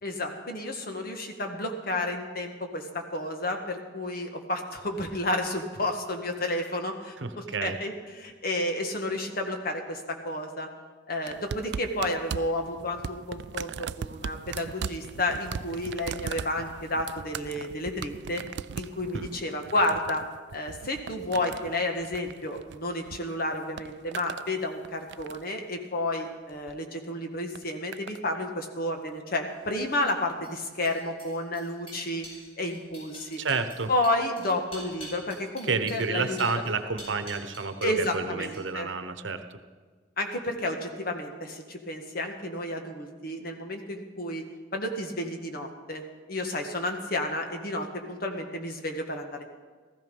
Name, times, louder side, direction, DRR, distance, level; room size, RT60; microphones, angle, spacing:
voice 1, 0.0-7.9 8.2-10.7 11.1-18.4 18.8-20.2 20.5-32.3 32.6-33.4 33.9-36.5 37.8-38.9 40.2-44.4 44.7-46.0 46.3-49.4, left 1 dB, 55° left, 4 dB, 1.7 m, -31 dB
voice 2, 7.2-7.8 19.1-19.3 33.4-33.9 35.6-39.6, right 4 dB, 80° right, 9 dB, 1.0 m, -30 dB
sound 1, 11.3-23.2 23.5-24.5 24.8-25.6 26.5-26.8 27.5-28.2 29.1-29.2, right 6 dB, 65° right, 0.4 m, -39 dB
sound 2, 29.6-38.1 38.4-38.9, equal, 30° left, 5.8 m, -47 dB
15.5 x 14.5 x 5.4 m, 1.4 s
head